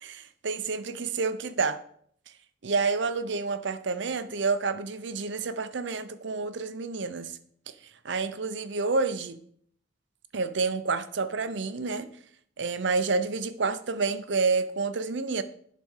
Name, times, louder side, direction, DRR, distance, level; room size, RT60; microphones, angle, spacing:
voice 1, 0.0-1.8 2.6-7.4 8.0-9.4 10.3-12.1 12.6-15.4, right 4 dB, 65° right, 0.7 m, -29 dB
10.5 x 4.2 x 6.5 m
head